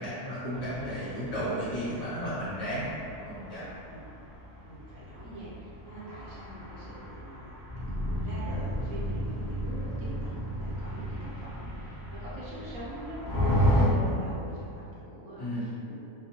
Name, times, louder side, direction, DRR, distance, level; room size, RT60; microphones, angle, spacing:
voice 1, 0.0-3.7 15.4-15.7, equal, 55° left, -12 dB, 1.2 m, -34 dB
sound 1, 0.5-13.8, equal, 25° right, 0.7 m, -33 dB
voice 2, 4.6-7.5 7.8-15.9, right 1 dB, 65° right, -8 dB, 0.9 m, -44 dB
2.8 x 2.1 x 2.7 m, 2.6 s
omnidirectional pair, 1.6 m